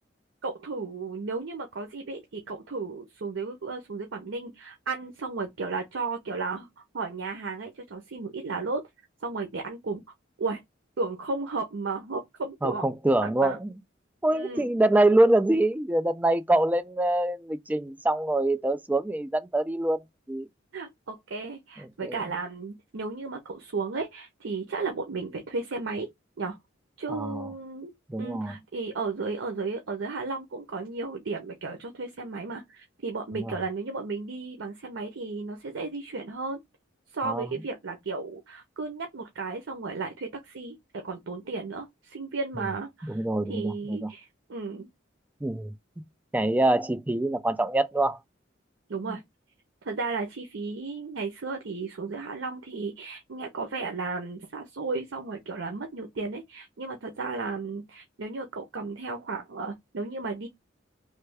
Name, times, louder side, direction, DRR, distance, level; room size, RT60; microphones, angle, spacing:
voice 1, 0.4-8.8 9.2-10.0 10.4-10.6 11.0-12.9 13.4-13.6 14.3-14.7 20.7-26.1 26.4-26.6 27.0-27.9 28.2-36.6 37.1-43.2 43.5-44.9 48.9-49.2 49.8-60.5, right 3 dB, 85° right, 0.7 m, -34 dB
voice 2, 12.6-13.7 14.2-20.0 20.3-20.5 22.0-22.2 27.1-27.5 28.1-28.5 33.3-33.5 37.2-37.5 43.1-44.1 45.4-45.7 46.3-48.2 49.1-49.2, right 1 dB, 10° right, 0.3 m, -25 dB
3.2 x 2.2 x 3.3 m
head